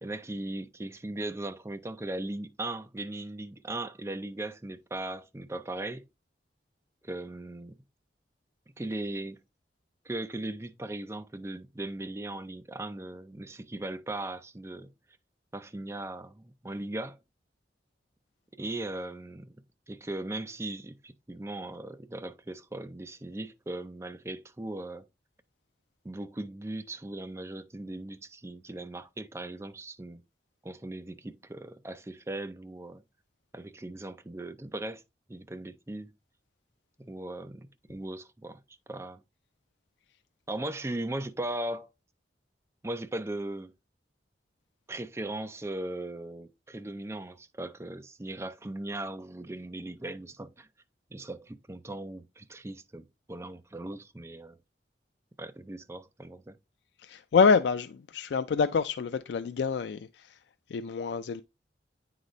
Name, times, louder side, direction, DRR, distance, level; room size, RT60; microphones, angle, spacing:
voice 1, 0.0-6.1 7.0-7.8 8.8-9.4 10.0-14.9 15.5-17.2 18.6-19.5 19.9-25.1 26.0-30.2 30.6-33.0 33.5-35.0 35.3-36.1 37.0-38.6 38.9-39.2 40.5-41.9 42.8-43.7 44.9-50.7 51.1-54.6 55.4-56.6, right 1 dB, 15° right, 0.4 m, -38 dB
voice 2, 57.0-60.4 60.7-61.4, left 5 dB, 75° left, 0.3 m, -26 dB
8.9 x 3.9 x 3.1 m
head